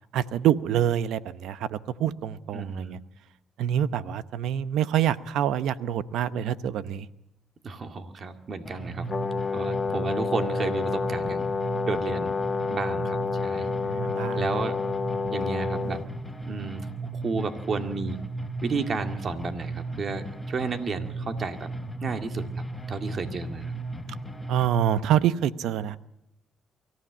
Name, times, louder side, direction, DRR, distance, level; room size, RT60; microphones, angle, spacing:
voice 1, 0.1-3.0 3.6-7.1 13.5-14.6 24.5-26.0, right 10 dB, 85° right, 15 dB, 0.8 m, -26 dB
voice 2, 2.5-3.0 7.6-9.1 9.5-11.4 11.8-12.3 12.7-13.7 14.4-14.8 15.3-16.0 16.4-16.9 17.1-18.2 18.6-21.7 22.0-23.7, right 4 dB, 50° right, 7 dB, 2.0 m, -32 dB
sound 1, 8.6-24.7, right 2 dB, 5° left, 3.2 m, -35 dB
Brass instrument, 9.1-16.1, left 5 dB, 30° left, 1.8 m, -29 dB
24.0 x 15.0 x 8.6 m, 0.83 s
cardioid pair, 90°, 0 cm